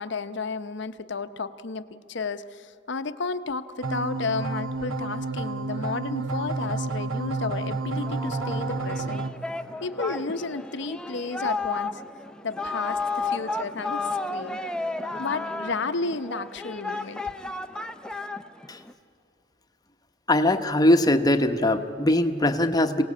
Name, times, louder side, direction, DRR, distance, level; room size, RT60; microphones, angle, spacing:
voice 1, 0.0-9.3 9.8-12.0 12.4-14.6 15.2-17.3, left 4 dB, 60° left, 11 dB, 0.8 m, -32 dB
sound 1, 3.8-9.3, right 3 dB, 85° right, 1.0 m, -30 dB
Singing, 7.9-18.9, left 3 dB, 5° left, 0.6 m, -33 dB
voice 2, 20.3-23.0, left 1 dB, 20° left, 7 dB, 0.9 m, -21 dB
26.0 x 18.0 x 8.5 m, 2.7 s
head